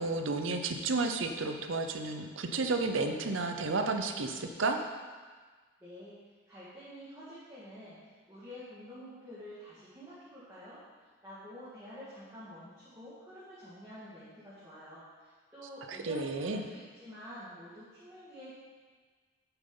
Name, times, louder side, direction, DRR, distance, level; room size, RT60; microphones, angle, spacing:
voice 1, 0.0-4.8 15.9-16.6, right 3 dB, 75° right, 5 dB, 0.7 m, -32 dB
voice 2, 5.8-6.2 6.5-10.8 11.2-18.5, equal, 15° right, -12 dB, 1.9 m, -49 dB
9.0 x 7.0 x 3.9 m, 1.4 s
head